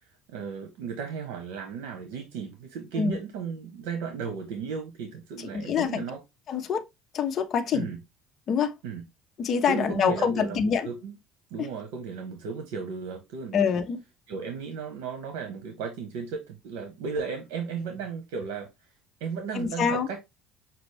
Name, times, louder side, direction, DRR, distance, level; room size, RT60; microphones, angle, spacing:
voice 1, 0.3-6.2 7.7-8.0 8.8-9.0 9.7-11.2 11.5-13.7 14.3-18.7 19.2-20.2, right 5 dB, 85° right, 1.0 m, -35 dB
voice 2, 5.5-6.0 6.5-6.8 7.1-7.9 8.5-8.7 9.4-10.9 11.6-11.7 13.5-14.0 19.5-20.1, left 6 dB, 40° left, 0.8 m, -25 dB
6.0 x 2.4 x 3.3 m
cardioid pair, 130°, 0 cm